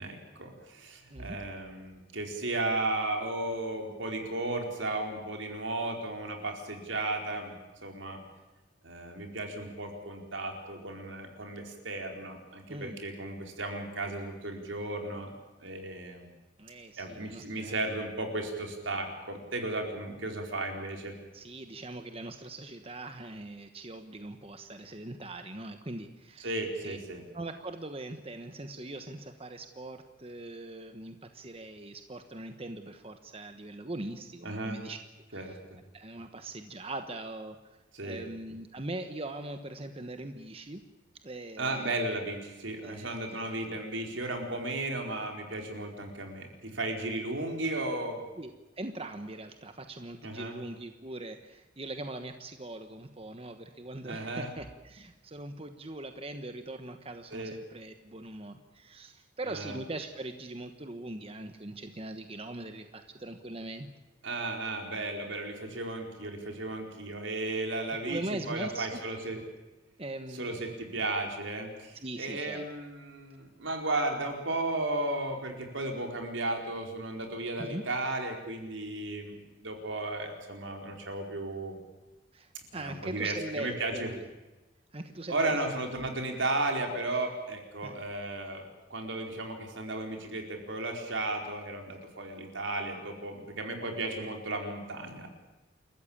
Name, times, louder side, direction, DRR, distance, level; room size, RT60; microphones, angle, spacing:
voice 1, 0.0-7.6 7.8-8.2 8.8-15.3 15.6-16.3 17.0-21.1 26.4-27.2 34.4-34.8 35.3-35.8 37.9-38.2 41.6-48.2 50.2-50.5 54.0-54.5 57.3-57.5 59.4-59.8 64.2-69.4 70.3-81.8 82.7-84.1 85.3-88.6 88.9-95.3, right 2 dB, 80° right, 3 dB, 4.5 m, -34 dB
voice 2, 16.6-17.8 21.3-26.5 26.8-27.0 27.3-35.0 35.3-35.5 35.9-37.6 38.0-40.8 41.2-41.9 42.8-43.4 48.4-48.5 48.8-63.9 68.1-69.0 70.0-70.6 72.0-72.6 77.7-77.8 82.3-84.2 84.9-85.6 87.8-87.9, right 2 dB, 30° right, 7 dB, 1.2 m, -41 dB
29.0 x 14.5 x 8.8 m, 1.1 s
head